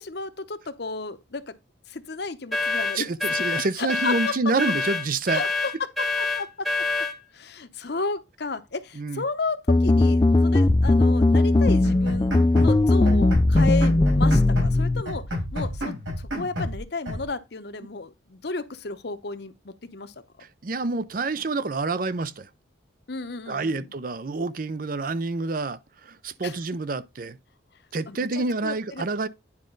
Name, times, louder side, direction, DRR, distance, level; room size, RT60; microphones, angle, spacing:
voice 1, 0.0-1.5 1.9-3.1 3.5-4.3 5.3-5.7 6.2-6.7 7.3-15.2 15.5-20.1 23.1-23.9 26.4-26.6 28.1-29.0, left 3 dB, 55° left, 0.8 m, -33 dB
sound 1, 2.5-7.2, left 3 dB, ahead, 1.0 m, -26 dB
voice 2, 2.9-5.4 9.0-9.2 20.4-22.5 23.5-27.4 27.9-29.3, right 3 dB, 45° right, 0.5 m, -28 dB
sound 2, 9.7-15.0, left 2 dB, 20° left, 0.3 m, -18 dB
sound 3, 11.8-12.8 13.1-14.8 15.1-16.8 17.1-17.2, left 1 dB, 80° right, 4.5 m, -31 dB
9.7 x 5.1 x 3.8 m
head